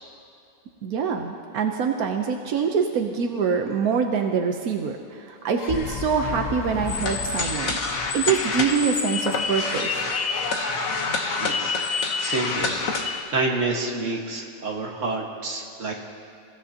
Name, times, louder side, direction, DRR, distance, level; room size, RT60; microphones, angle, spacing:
voice 1, 0.8-7.7 8.1-10.0, right 6 dB, 90° right, 3 dB, 1.3 m, -25 dB
sound 1, 5.3-9.5, left 7 dB, 50° left, 0.5 m, -35 dB
sound 2, 6.9-13.2, left 4 dB, 70° left, 1.6 m, -27 dB
voice 2, 10.2-15.9, right 3 dB, 60° right, 0 dB, 2.0 m, -30 dB
28.5 x 16.0 x 2.9 m, 2.5 s
omnidirectional pair, 1.5 m